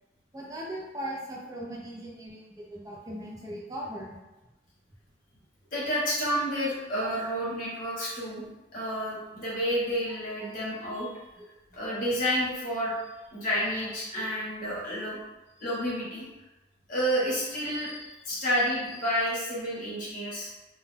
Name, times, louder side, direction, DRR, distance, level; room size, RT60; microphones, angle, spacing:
voice 1, 0.3-4.2, equal, 20° right, -4 dB, 0.6 m, -38 dB
voice 2, 5.7-8.4 8.7-11.1 11.7-12.9 13.3-15.2 15.6-16.2 16.9-20.5, equal, 50° left, -7 dB, 1.1 m, -30 dB
2.4 x 2.3 x 3.3 m, 1.0 s
head